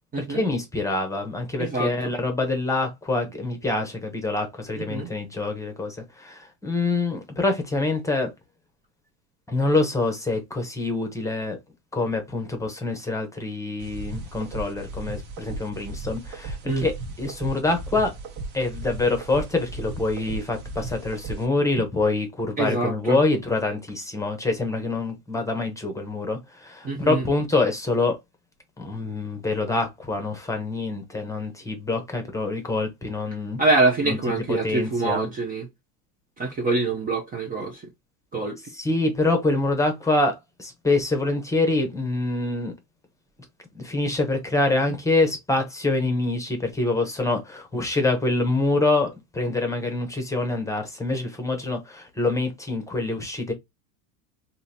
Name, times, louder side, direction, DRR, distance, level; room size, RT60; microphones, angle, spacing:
voice 1, 0.2-8.3 9.5-11.6 11.9-18.2 18.5-28.2 28.8-33.6 34.0-34.2 34.5-35.3 38.7-42.7 43.7-53.5, left 2 dB, 5° left, 0.9 m, -25 dB
voice 2, 1.6-2.1 4.8-5.1 16.6-16.9 22.6-23.2 26.8-27.2 33.6-35.7 36.4-37.8 38.3-38.6, right 3 dB, 20° right, 0.7 m, -25 dB
sound 1, 13.8-21.5, right 3 dB, 45° right, 1.2 m, -36 dB
3.8 x 2.8 x 2.8 m
supercardioid pair, 130°, 41 cm